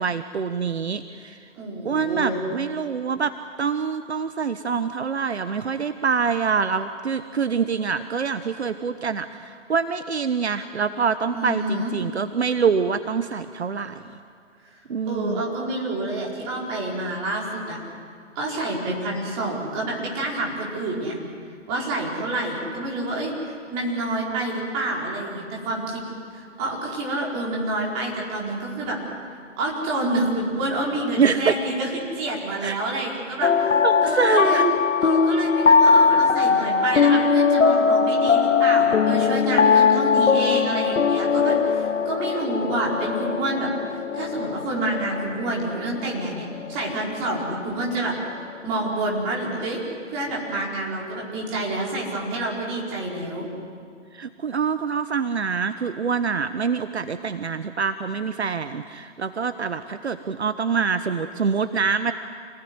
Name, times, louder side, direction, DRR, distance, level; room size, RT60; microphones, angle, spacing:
voice 1, 0.0-1.4 1.8-3.3 3.6-14.0 14.9-15.4 31.2-31.6 32.6-32.8 33.8-34.8 54.1-62.1, right 6 dB, 60° right, 11 dB, 1.2 m, -25 dB
voice 2, 1.6-2.4 11.3-11.9 14.7-14.8 15.0-17.8 18.3-21.2 21.7-23.3 23.7-26.0 26.3-29.0 29.6-33.5 34.0-34.6 35.0-43.7 44.1-48.2 48.6-49.8 50.1-53.5, right 2 dB, 15° right, -3 dB, 4.7 m, -28 dB
sound 1, 33.4-47.7, left 5 dB, 85° left, 1.1 m, -20 dB
28.0 x 20.0 x 9.7 m, 2.2 s
hypercardioid pair, 160°, 37 cm